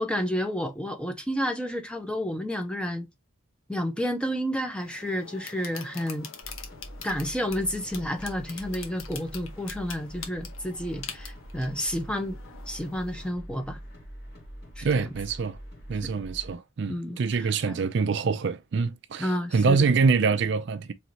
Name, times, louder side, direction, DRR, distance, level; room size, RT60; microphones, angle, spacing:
voice 1, 0.0-3.1 3.7-6.3 7.0-12.4 12.7-13.8 14.8-15.1 16.9-17.8 19.2-19.9, equal, 5° left, 0.7 m, -30 dB
sound 1, 4.7-13.3, left 7 dB, 75° left, 1.0 m, -44 dB
sound 2, 6.4-16.6, equal, 45° left, 2.1 m, -44 dB
voice 2, 14.8-15.6 15.9-20.9, right 5 dB, 55° right, 0.4 m, -25 dB
4.4 x 3.2 x 2.8 m
head